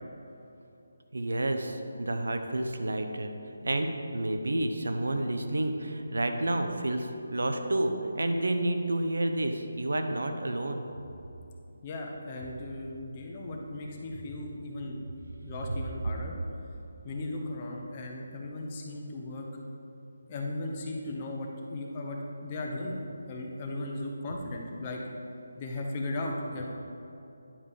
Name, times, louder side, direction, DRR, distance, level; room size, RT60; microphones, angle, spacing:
voice 1, 1.1-3.3 3.6-10.8, right 1 dB, 85° right, 6 dB, 0.9 m, -30 dB
voice 2, 11.8-15.0 15.4-16.3 17.0-19.5 20.3-23.0 23.3-25.0 25.6-26.7, left 2 dB, 25° left, 0 dB, 1.0 m, -36 dB
9.9 x 5.2 x 5.5 m, 2.8 s
figure-of-eight pair, 170°, 0 cm